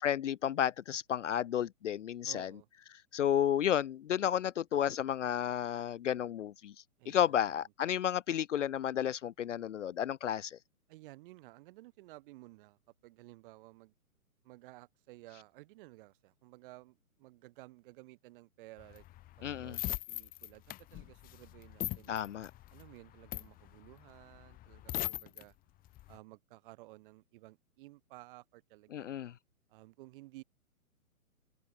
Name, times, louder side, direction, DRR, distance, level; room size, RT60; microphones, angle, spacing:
voice 1, 0.0-2.5 3.1-6.7 7.1-10.6 19.4-19.8 22.1-22.5 28.9-29.3, left 10 dB, 55° left, 0.7 m, -32 dB
voice 2, 2.2-2.7 7.0-7.7 10.9-13.9 14.4-19.0 19.4-22.2 22.7-25.5 26.1-29.2 29.7-30.4, right 20 dB, 35° right, 6.6 m, -55 dB
sound 1, 18.8-25.4 25.8-26.2, left 16 dB, 20° left, 2.6 m, -40 dB
figure-of-eight pair, 130°, 44 cm